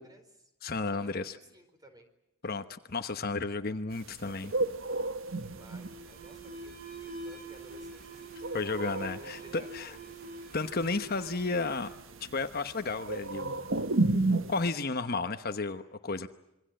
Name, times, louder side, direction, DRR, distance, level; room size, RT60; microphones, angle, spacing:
voice 1, 0.0-0.5 0.8-2.1 5.3-8.4 9.0-10.2, equal, 15° right, 7 dB, 4.2 m, -55 dB
voice 2, 0.6-1.4 2.4-4.5 8.5-10.0 10.5-11.9 12.2-13.6 14.1-16.3, left 3 dB, 45° left, 8 dB, 1.1 m, -33 dB
sound 1, 3.9-14.7, right 2 dB, 65° right, 1.3 m, -33 dB
Alarm, 4.5-13.1, right 2 dB, 40° right, 5.6 m, -46 dB
27.0 x 23.5 x 7.7 m, 0.89 s
head